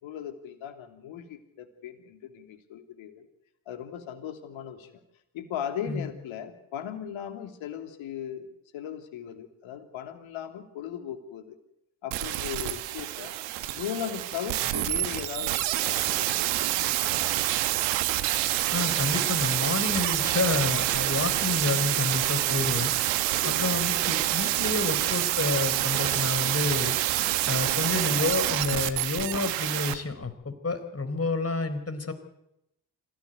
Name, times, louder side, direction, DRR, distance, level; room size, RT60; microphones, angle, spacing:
voice 1, 0.0-3.3 3.7-4.9 5.3-11.6 12.0-13.3 13.7-17.2 23.4-23.7, left 9 dB, 70° left, 6 dB, 3.0 m, -38 dB
sound 1, 12.1-29.9 30.2-30.3, right 15 dB, 80° right, 1.4 m, -27 dB
voice 2, 18.7-23.0 23.4-27.0 27.4-32.1, left 3 dB, 30° left, 11 dB, 4.4 m, -29 dB
26.5 x 16.5 x 8.0 m, 0.84 s
hypercardioid pair, 40°, 48 cm